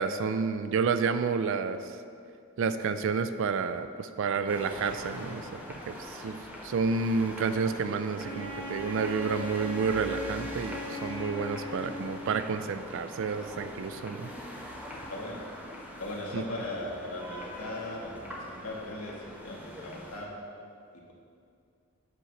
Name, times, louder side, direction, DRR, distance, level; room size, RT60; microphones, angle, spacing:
voice 1, 0.0-1.8 2.6-14.3 16.3-16.4, right 5 dB, 60° right, 10 dB, 0.3 m, -30 dB
sound 1, 4.5-20.2, equal, 5° right, 0.8 m, -43 dB
Wind instrument woodwind instrument, 8.2-12.5, left 1 dB, 25° right, 1.6 m, -39 dB
voice 2, 14.9-15.5 16.0-20.3, left 1 dB, 90° left, -3 dB, 1.3 m, -38 dB
8.1 x 3.1 x 5.7 m, 2.4 s
head